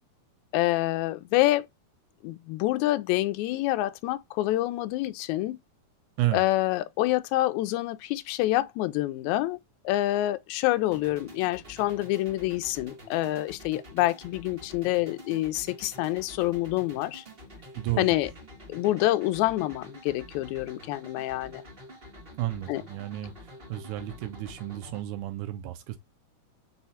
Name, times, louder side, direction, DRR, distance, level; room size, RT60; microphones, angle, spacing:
voice 1, 0.5-1.7 2.2-5.6 6.3-9.6 9.9-17.2 18.0-18.3 18.7-21.6 22.7-22.8, left 16 dB, 80° left, 1.8 m, -27 dB
sound 1, 10.9-25.0, left 1 dB, 45° right, 0.7 m, -48 dB
voice 2, 17.8-18.1 22.4-23.3 23.7-26.0, right 15 dB, 80° right, 2.1 m, -31 dB
5.5 x 2.3 x 4.1 m
omnidirectional pair, 3.5 m